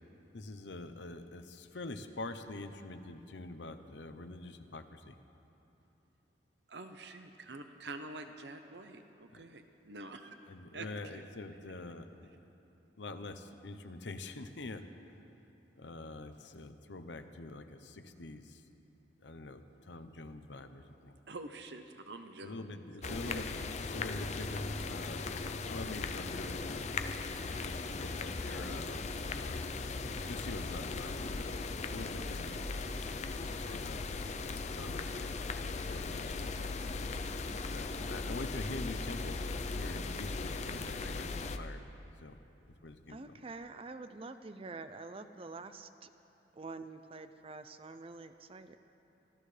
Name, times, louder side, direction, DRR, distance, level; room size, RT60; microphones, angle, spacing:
voice 1, 0.3-5.1 9.3-9.4 10.5-12.3 13.0-14.8 15.8-18.4 19.2-21.1 22.4-26.8 27.6-29.6 30.3-31.6 31.9-32.6 33.7-34.0 34.7-36.7 37.7-39.4 39.7-41.8 42.2-42.3 42.8-43.2, left 2 dB, 85° left, 8 dB, 0.8 m, -45 dB
voice 2, 6.7-10.4 10.7-11.2 21.3-22.5 23.0-23.6, right 2 dB, 70° right, 7 dB, 0.8 m, -47 dB
sound 1, 23.0-41.6, left 3 dB, 40° left, 0.6 m, -38 dB
voice 3, 43.1-46.1 46.5-48.8, right 3 dB, 30° right, 10 dB, 0.5 m, -46 dB
25.0 x 15.0 x 3.4 m, 2.9 s
head